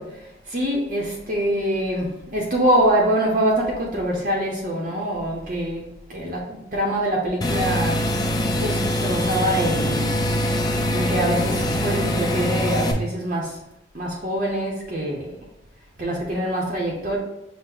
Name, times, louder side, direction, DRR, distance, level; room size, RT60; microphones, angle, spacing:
voice 1, 0.0-10.2 10.9-13.6 13.9-15.4 16.0-17.2, right 1 dB, 45° right, -1 dB, 0.6 m, -24 dB
sound 1, 7.4-12.9, equal, 20° left, 0.3 m, -23 dB
5.9 x 2.0 x 3.7 m, 0.90 s
head